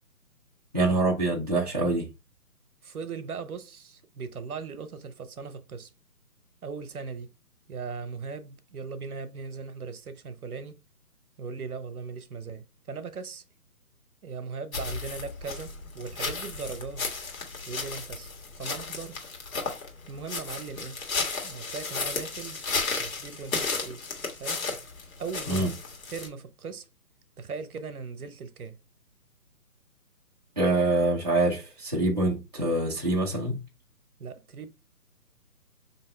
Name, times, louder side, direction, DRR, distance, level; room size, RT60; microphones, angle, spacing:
voice 1, 0.7-2.1 25.5-25.7 30.6-33.6, right 2 dB, 30° right, 0.4 m, -25 dB
voice 2, 2.8-5.9 6.6-7.3 7.7-10.8 11.4-13.4 14.2-17.1 17.7-18.3 18.6-19.3 20.1-21.0 21.4-22.6 23.0-24.0 24.3-24.6 25.2-25.8 26.1-26.9 27.4-28.8 34.2-34.7, right 5 dB, 65° right, 0.8 m, -38 dB
sound 1, 14.7-26.3, left 4 dB, 60° left, 1.6 m, -34 dB
4.5 x 2.8 x 3.1 m
figure-of-eight pair, 145°, 46 cm